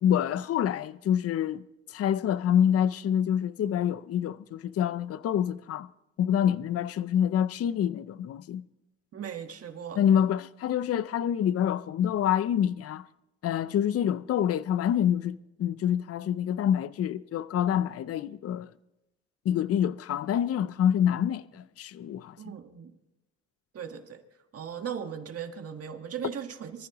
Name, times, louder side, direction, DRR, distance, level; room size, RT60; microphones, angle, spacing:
voice 1, 0.0-5.9 6.2-8.6 10.0-13.0 13.4-18.7 19.5-22.4, left 9 dB, 50° left, 0.5 m, -27 dB
voice 2, 9.1-10.0 22.4-22.9 23.7-24.2 24.5-26.9, right 8 dB, 50° right, 1.6 m, -38 dB
25.0 x 14.0 x 3.0 m
cardioid pair, 90°, 30 cm